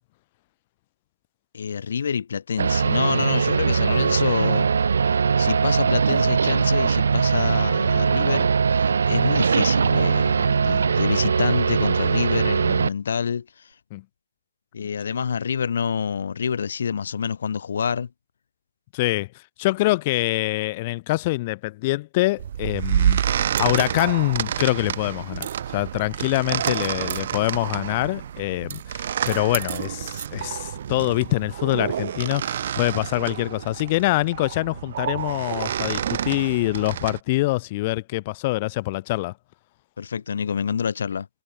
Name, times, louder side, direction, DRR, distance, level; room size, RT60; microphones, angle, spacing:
voice 1, 1.5-4.7 5.4-13.7 14.7-18.1 40.0-41.3, left 6 dB, 45° left, 2.0 m, -27 dB
sound 1, 2.6-12.9, right 5 dB, 50° right, 2.6 m, -21 dB
voice 2, 18.9-19.3 19.6-23.2 23.6-39.3, left 20 dB, 20° left, 1.4 m, -25 dB
sound 2, 22.4-37.2, right 9 dB, 35° right, 3.6 m, -28 dB
figure-of-eight pair, 160°, 0 cm